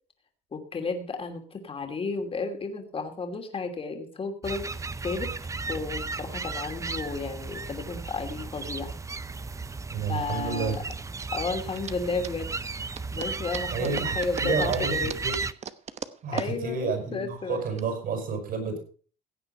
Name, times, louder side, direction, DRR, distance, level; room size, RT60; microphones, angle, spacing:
voice 1, 0.5-5.3 5.7-8.9 10.1-10.8 11.3-12.5 13.1-15.1 16.3-17.6, left 4 dB, 35° left, 5 dB, 2.7 m, -33 dB
sound 1, 4.4-15.5, right 4 dB, 20° right, 0.7 m, -34 dB
sound 2, 9.1-17.8, right 7 dB, 40° right, 1.0 m, -40 dB
voice 2, 9.9-10.8 13.7-14.9 15.2-15.3 16.2-18.8, right 5 dB, 60° right, 5 dB, 7.0 m, -30 dB
16.5 x 8.7 x 5.5 m, 0.40 s
cardioid pair, 110°, 17 cm